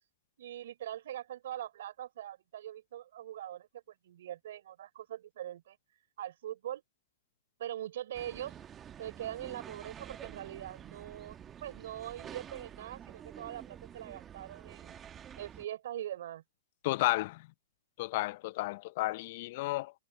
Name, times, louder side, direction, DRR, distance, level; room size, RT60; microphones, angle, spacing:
voice 1, 0.4-5.8 6.2-6.8 7.6-8.6 9.0-11.4 11.6-15.0 15.4-16.4, right 12 dB, 65° right, 4.0 m, -42 dB
sound 1, 8.1-15.7, right 9 dB, 20° right, 1.6 m, -49 dB
voice 2, 16.8-17.4 18.0-19.9, left 19 dB, 50° left, 0.5 m, -32 dB
hypercardioid pair, 135°, 0 cm